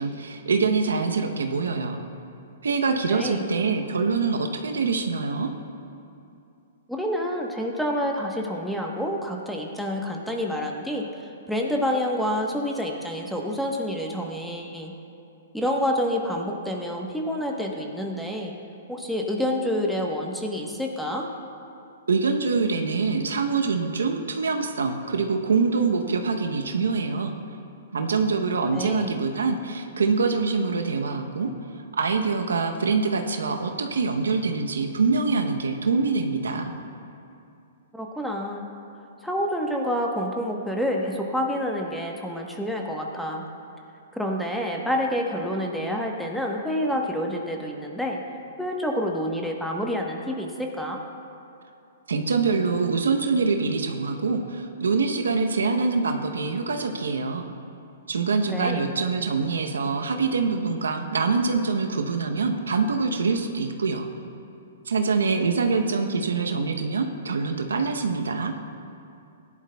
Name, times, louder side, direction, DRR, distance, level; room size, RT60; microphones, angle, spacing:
voice 1, 0.0-2.0 2.6-5.5 22.1-27.3 27.9-31.5 32.0-36.7 52.1-57.5 58.1-64.1 64.9-68.5, right 4 dB, 85° right, 5 dB, 0.8 m, -24 dB
voice 2, 3.1-3.4 6.9-14.9 15.5-18.5 18.9-21.3 28.7-29.1 37.9-38.7 39.2-43.4 44.1-48.2 48.6-51.0 58.5-58.9, equal, ahead, 0 dB, 1.1 m, -28 dB
16.5 x 11.0 x 2.3 m, 2.7 s
hypercardioid pair, 130°, 0 cm